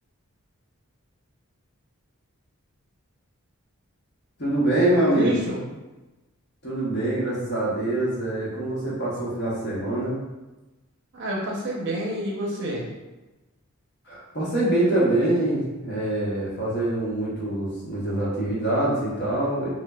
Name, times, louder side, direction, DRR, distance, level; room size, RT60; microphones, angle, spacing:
voice 1, 4.4-5.4 6.6-10.1 14.1-19.7, right 1 dB, 50° left, -6 dB, 0.9 m, -24 dB
voice 2, 5.1-5.6 11.1-12.9, right 1 dB, 55° right, -3 dB, 0.6 m, -28 dB
2.9 x 2.1 x 2.2 m, 1.1 s
head